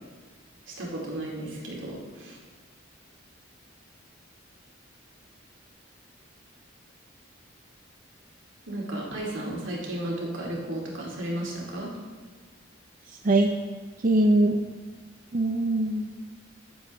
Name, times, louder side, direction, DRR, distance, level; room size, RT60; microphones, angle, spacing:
voice 1, 0.7-2.4 8.7-11.9, right 1 dB, 80° right, -3 dB, 2.4 m, -34 dB
voice 2, 14.0-14.6 15.3-16.1, right 2 dB, 45° right, 3 dB, 0.5 m, -21 dB
15.0 x 7.1 x 3.1 m, 1.5 s
head